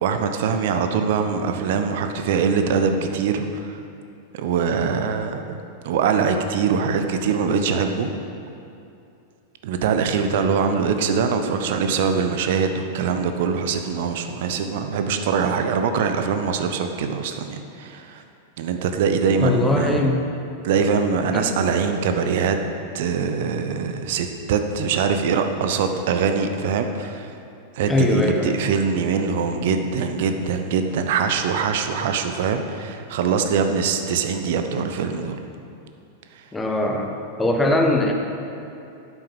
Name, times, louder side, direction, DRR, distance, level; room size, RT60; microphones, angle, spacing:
voice 1, 0.0-3.8 4.3-5.6 5.8-8.1 9.6-18.2 18.6-20.0 20.6-22.6 22.9-27.3 27.8-35.4, right 6 dB, 55° right, 7 dB, 0.9 m, -23 dB
voice 2, 19.2-20.3 21.3-21.6 27.8-28.6 36.5-37.1 37.4-38.1, left 1 dB, 10° left, 2 dB, 1.4 m, -21 dB
10.5 x 8.1 x 7.2 m, 2.6 s
figure-of-eight pair, 90°, 0 cm